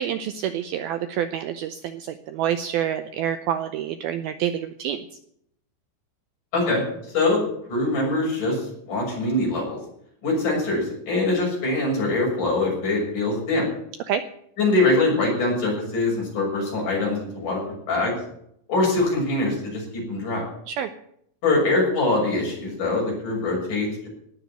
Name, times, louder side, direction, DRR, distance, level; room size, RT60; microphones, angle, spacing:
voice 1, 0.0-5.0 14.1-14.2 20.7-20.9, right 10 dB, 80° right, 10 dB, 2.3 m, -27 dB
voice 2, 7.1-7.4 7.7-9.8 10.2-13.6 14.6-17.6 17.9-18.1 18.7-20.4 21.4-24.1, left 2 dB, 45° left, -2 dB, 7.9 m, -23 dB
18.5 x 7.1 x 9.1 m, 0.71 s
omnidirectional pair, 5.0 m